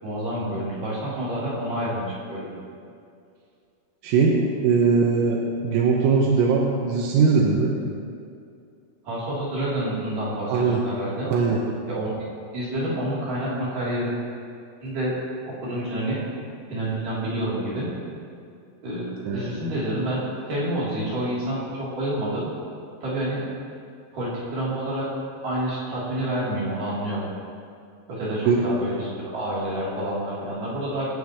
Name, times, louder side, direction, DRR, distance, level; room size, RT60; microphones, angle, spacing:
voice 1, 0.0-2.6 9.0-11.3 11.9-12.1 12.5-14.1 14.8-15.1 15.6-16.2 16.7-17.9 18.8-20.2 20.5-22.5 23.0-23.4 24.1-25.1 25.4-27.3 28.1-31.1, right 1 dB, 45° right, -9 dB, 4.5 m, -28 dB
voice 2, 4.0-4.4 4.6-7.7 10.5-10.8 11.3-11.6 19.3-19.5 28.5-28.6, right 5 dB, 85° right, -3 dB, 3.9 m, -20 dB
27.0 x 9.7 x 3.2 m, 2.4 s
omnidirectional pair, 5.9 m